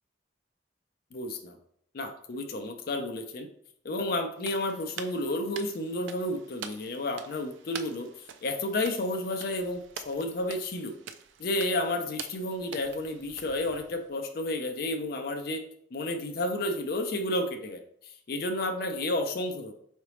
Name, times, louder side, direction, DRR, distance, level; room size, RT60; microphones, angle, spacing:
voice 1, 1.1-1.5 1.9-3.5 3.8-8.1 8.4-10.9 11.4-15.6 15.9-19.7, left 1 dB, 50° left, 5 dB, 0.4 m, -31 dB
sound 1, 4.4-14.1, right 7 dB, 85° right, 0.4 m, -46 dB
3.8 x 3.2 x 3.1 m, 0.68 s
head